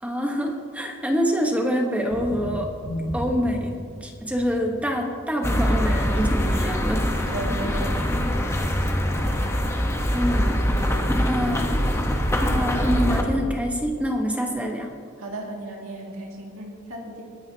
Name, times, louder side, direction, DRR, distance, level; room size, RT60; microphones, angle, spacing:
voice 1, 0.0-2.7 3.1-7.1 10.1-10.6 11.1-11.7 12.4-14.9, equal, 5° right, 1 dB, 1.1 m, -26 dB
sound 1, 2.1-3.9 4.4-5.0 5.4-8.6 9.0-10.5 10.8-11.1 11.7-12.8 13.1-13.5, equal, 70° left, 2.3 m, -36 dB
sound 2, 5.4-13.2, equal, 15° left, 1.0 m, -23 dB
voice 2, 7.3-8.5 15.2-17.2, right 1 dB, 90° right, -1 dB, 2.2 m, -35 dB
22.0 x 9.9 x 2.8 m, 2.1 s
head